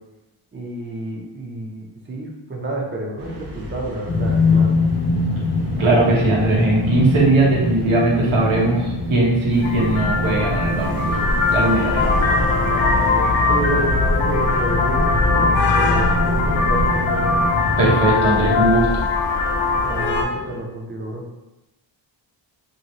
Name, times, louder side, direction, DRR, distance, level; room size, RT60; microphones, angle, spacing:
voice 1, 0.5-4.7 12.7-17.5 19.8-21.2, right 1 dB, 25° right, -1 dB, 0.6 m, -30 dB
sound 1, 3.2-20.6, left 1 dB, 60° right, 0.7 m, -38 dB
sound 2, 4.1-17.9, left 2 dB, 25° left, 0.3 m, -24 dB
voice 2, 5.8-11.2 11.5-12.1 17.8-18.9, right 2 dB, 90° right, -3 dB, 1.1 m, -19 dB
Vehicle horn car horn honking, 9.6-20.2, left 3 dB, 80° left, 0.7 m, -20 dB
3.1 x 2.8 x 2.9 m, 0.96 s
wide cardioid pair, 130°, 46 cm